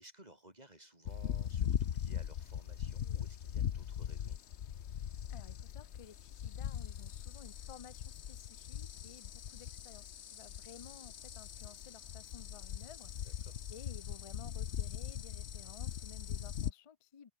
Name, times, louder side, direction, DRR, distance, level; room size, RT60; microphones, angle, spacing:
voice 1, 0.0-4.4 13.2-13.6, right 1 dB, 30° right, 6.0 m, -58 dB
sound 1, 1.1-16.7, left 9 dB, 65° left, 1.1 m, -40 dB
voice 2, 5.3-13.1 13.7-17.3, left 7 dB, 35° left, 0.6 m, -55 dB
open air
omnidirectional pair, 1.3 m